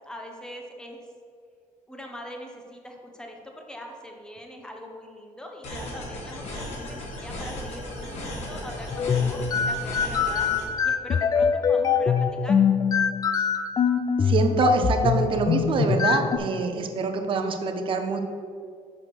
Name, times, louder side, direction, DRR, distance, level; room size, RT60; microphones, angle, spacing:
voice 1, 0.1-1.1 1.9-10.5 10.8-12.6, equal, 5° left, 2 dB, 1.0 m, -42 dB
sound 1, 5.6-10.6, left 1 dB, 55° left, 2.0 m, -36 dB
sound 2, 8.9-16.4, left 6 dB, 30° left, 0.4 m, -23 dB
voice 2, 14.2-18.2, right 4 dB, 40° right, 6 dB, 0.8 m, -25 dB
6.2 x 4.9 x 5.9 m, 2.3 s
cardioid pair, 130°, 13 cm